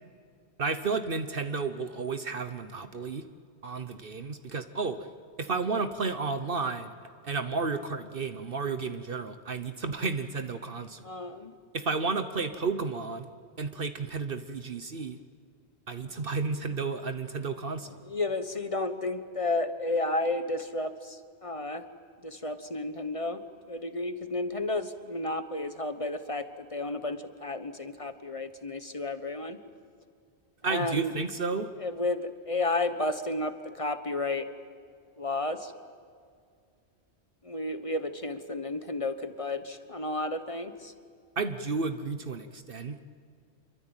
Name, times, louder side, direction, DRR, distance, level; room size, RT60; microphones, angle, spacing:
voice 1, 0.6-3.3 3.6-5.1 5.4-6.9 7.2-11.0 11.7-13.3 13.6-15.2 15.9-18.0 30.6-31.7 41.4-43.0, right 4 dB, 55° right, 9 dB, 1.2 m, -32 dB
voice 2, 11.0-11.5 17.8-21.9 22.2-29.6 30.6-31.2 31.8-34.5 35.2-35.7 37.4-40.9, left 2 dB, 30° left, 10 dB, 1.3 m, -32 dB
27.5 x 23.5 x 9.0 m, 2.2 s
omnidirectional pair, 1.1 m